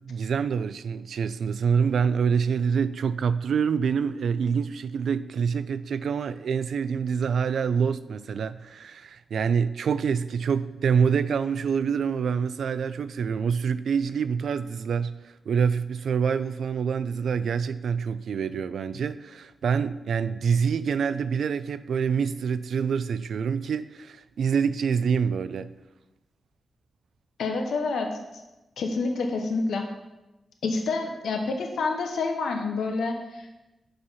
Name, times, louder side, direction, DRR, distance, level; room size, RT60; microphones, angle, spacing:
voice 1, 0.0-15.1 15.5-25.7, right 6 dB, 80° right, 14 dB, 0.4 m, -26 dB
voice 2, 27.4-28.1 28.8-29.8 30.6-33.5, left 3 dB, 85° left, 3 dB, 0.9 m, -28 dB
6.7 x 5.6 x 5.6 m, 1.0 s
cardioid pair, 70°, 0 cm